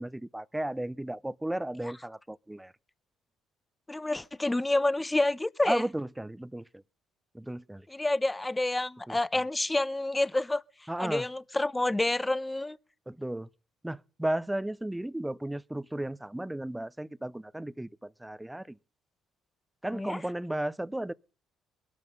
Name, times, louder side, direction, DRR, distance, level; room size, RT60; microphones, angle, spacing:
voice 1, 0.0-2.7 5.6-6.8 7.3-7.9 9.1-9.2 10.9-11.2 13.1-13.5 13.8-18.8 19.8-21.1, right 1 dB, 10° right, 0.8 m, -34 dB
voice 2, 3.9-5.8 7.9-12.8 19.9-20.2, left 2 dB, 15° left, 0.9 m, -29 dB
21.5 x 12.5 x 5.5 m
hypercardioid pair, 60°, 0 cm